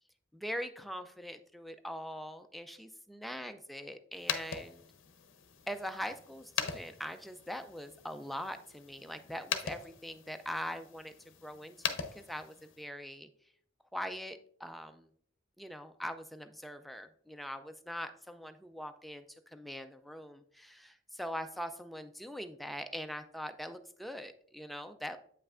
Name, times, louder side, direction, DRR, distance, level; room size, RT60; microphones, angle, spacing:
voice 1, 0.3-4.9 5.7-13.3 13.9-15.1 15.6-25.2, equal, ahead, 8 dB, 0.3 m, -42 dB
sound 1, 4.1-12.8, left 8 dB, 70° left, 0.6 m, -41 dB
7.8 x 5.5 x 2.4 m, 0.63 s
head